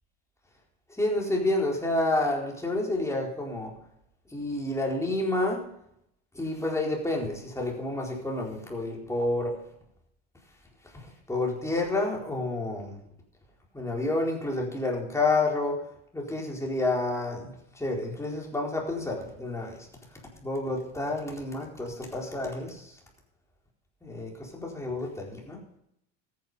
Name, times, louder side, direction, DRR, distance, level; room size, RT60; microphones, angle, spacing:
voice 1, 1.0-3.7 4.3-5.6 6.3-9.5 10.9-13.0 13.7-15.8 16.1-19.9 20.4-22.9 24.0-25.6, left 2 dB, 10° left, -1 dB, 4.2 m, -29 dB
13.5 x 9.6 x 5.5 m, 0.75 s
supercardioid pair, 110°, 35 cm